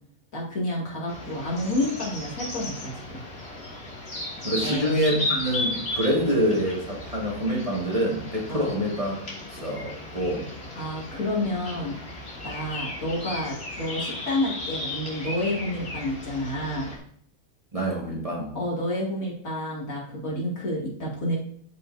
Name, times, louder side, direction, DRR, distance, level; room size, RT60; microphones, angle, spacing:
voice 1, 0.3-3.2 4.6-4.9 8.5-8.8 10.8-12.0 12.4-16.9 18.5-21.4, left 1 dB, 65° left, -3 dB, 2.6 m, -29 dB
sound 1, 1.1-17.0, left 1 dB, 40° left, 2.3 m, -35 dB
voice 2, 4.4-9.2 9.5-10.4 17.7-18.5, equal, 20° right, -3 dB, 1.8 m, -26 dB
13.0 x 5.4 x 2.6 m, 0.63 s
omnidirectional pair, 1.6 m